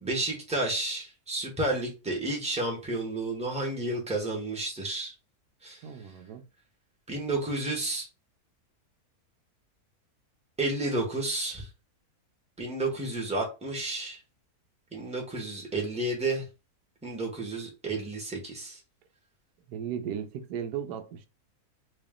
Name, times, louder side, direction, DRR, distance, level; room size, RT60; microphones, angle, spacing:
voice 1, 0.0-5.1 5.6-5.8 7.1-8.1 10.6-11.7 12.6-14.2 14.9-16.5 17.0-18.8, right 2 dB, 5° right, 1.0 m, -31 dB
voice 2, 5.8-6.4 19.7-21.3, right 8 dB, 85° right, 1.2 m, -36 dB
3.2 x 2.8 x 3.6 m
omnidirectional pair, 1.6 m